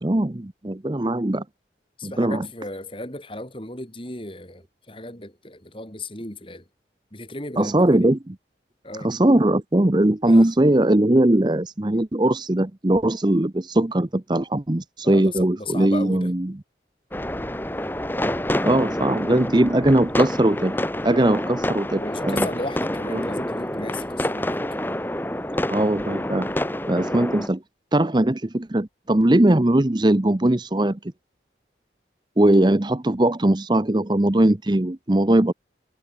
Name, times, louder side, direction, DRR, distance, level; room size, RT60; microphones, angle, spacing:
voice 1, 0.0-1.4 2.0-2.5 7.6-8.4 9.0-16.5 18.6-20.8 21.0-22.5 23.1-23.3 25.7-26.5 26.9-27.6 27.9-31.0 32.4-35.5, right 1 dB, 25° right, 0.7 m, -20 dB
voice 2, 2.0-6.7 7.1-8.1 8.8-9.2 10.3-10.5 15.0-16.3 21.9-24.8, left 2 dB, 30° left, 4.6 m, -35 dB
sound 1, 17.1-27.5, left 1 dB, 10° left, 1.8 m, -27 dB
head